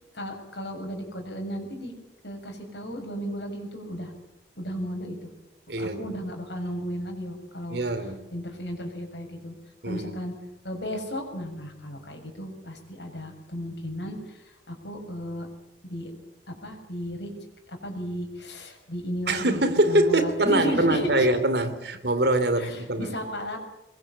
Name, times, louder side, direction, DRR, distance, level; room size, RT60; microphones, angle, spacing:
voice 1, 0.0-1.9 2.2-4.1 4.6-5.3 5.8-7.8 8.3-9.5 9.9-10.3 10.6-15.5 15.8-16.1 16.5-17.3 17.7-19.6 19.9-21.3 22.6-23.6, equal, 70° left, 7.1 m, -34 dB
voice 2, 5.7-6.1 7.7-8.2 9.8-10.2 19.3-23.1, right 1 dB, 65° right, 2.9 m, -24 dB
24.5 x 21.5 x 8.6 m
head